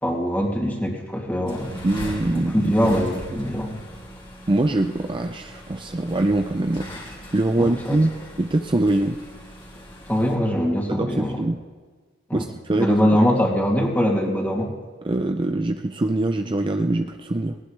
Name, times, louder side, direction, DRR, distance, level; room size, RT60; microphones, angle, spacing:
voice 1, 0.0-1.7 2.3-3.8 7.6-8.0 10.1-11.4 12.3-12.5 12.7-14.7, equal, 10° left, -2 dB, 2.6 m, -22 dB
sound 1, 1.5-10.4, equal, 25° left, 2.5 m, -39 dB
voice 2, 1.8-3.0 4.5-6.9 7.3-8.1 8.4-9.2 10.9-11.6 12.3-13.2 15.0-17.6, right 2 dB, 25° right, 6 dB, 0.5 m, -23 dB
18.5 x 18.5 x 3.3 m, 1.5 s
head